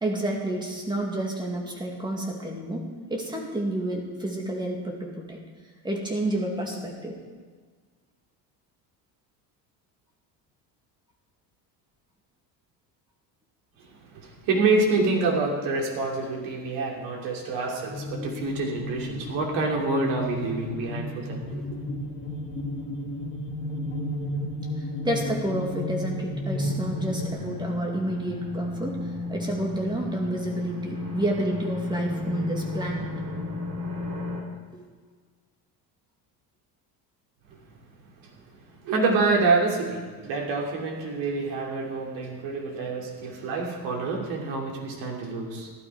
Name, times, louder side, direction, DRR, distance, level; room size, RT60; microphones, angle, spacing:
voice 1, 0.0-5.4 5.8-7.2 24.8-33.1 34.7-34.8, right 1 dB, 10° right, 0 dB, 2.2 m, -30 dB
voice 2, 13.8-21.8 37.5-37.6 38.2-45.7, right 3 dB, 75° right, -1 dB, 3.0 m, -27 dB
sound 1, 17.9-27.3, left 1 dB, 25° left, 2.0 m, -33 dB
sound 2, 26.6-34.4, left 3 dB, 45° right, 3.9 m, -33 dB
15.0 x 12.0 x 4.8 m, 1.5 s
cardioid pair, 155°, 44 cm